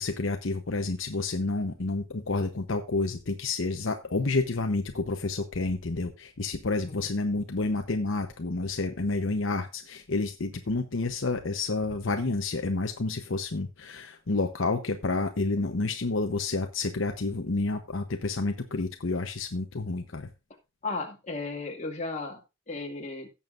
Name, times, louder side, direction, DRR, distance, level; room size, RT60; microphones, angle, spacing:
voice 1, 0.0-20.3, left 3 dB, 70° left, 0.9 m, -29 dB
voice 2, 20.8-22.4 22.7-23.3, left 3 dB, 35° left, 2.1 m, -35 dB
16.5 x 7.2 x 2.5 m
head